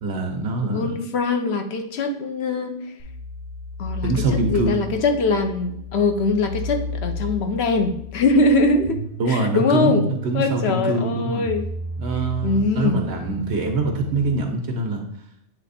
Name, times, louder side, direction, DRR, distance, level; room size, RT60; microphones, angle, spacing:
voice 1, 0.0-0.9 4.0-4.8 9.2-11.5 12.0-15.0, right 3 dB, 65° right, 4 dB, 1.2 m, -24 dB
voice 2, 0.6-2.8 3.8-9.0 9.3-10.0 10.3-11.7 12.4-13.0, left 3 dB, 65° left, 6 dB, 0.9 m, -22 dB
sound 1, 3.0-14.4, left 1 dB, 50° left, 1.4 m, -33 dB
8.2 x 3.4 x 4.1 m, 0.74 s
omnidirectional pair, 1.2 m